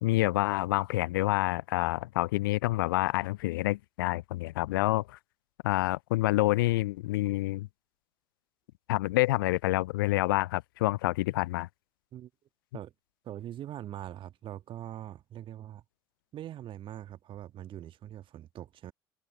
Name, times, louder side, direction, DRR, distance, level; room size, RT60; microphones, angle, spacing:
voice 1, 0.0-5.2 5.6-7.7 8.9-11.7, left 18 dB, 70° left, 0.4 m, -28 dB
voice 2, 13.2-15.8 16.3-18.9, right 12 dB, 45° right, 1.5 m, -42 dB
figure-of-eight pair, 60°, 12 cm